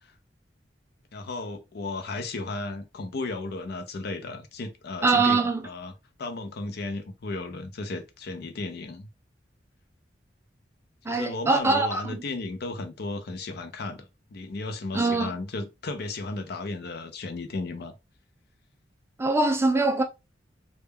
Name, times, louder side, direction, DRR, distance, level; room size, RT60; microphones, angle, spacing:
voice 1, 1.1-5.9 6.2-9.1 11.1-14.0 14.3-17.9, left 3 dB, 60° left, 0.5 m, -34 dB
voice 2, 5.0-5.6 11.1-12.2 14.9-15.3 19.2-20.0, right 3 dB, 15° right, 0.3 m, -23 dB
2.2 x 2.2 x 3.3 m
head